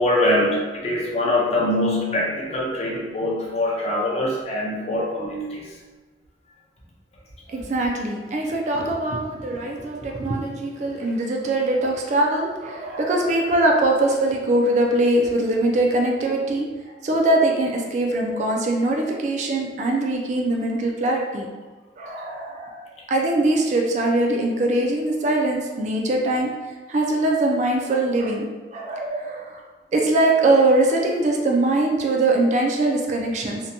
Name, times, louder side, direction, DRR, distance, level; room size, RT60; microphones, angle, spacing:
voice 1, 0.0-5.7, left 1 dB, 35° left, -3 dB, 0.5 m, -23 dB
voice 2, 7.5-16.7 17.0-21.5 22.0-26.5 26.9-29.6 29.9-33.6, right 2 dB, 40° right, 0 dB, 0.3 m, -22 dB
2.7 x 2.1 x 2.5 m, 1.3 s
head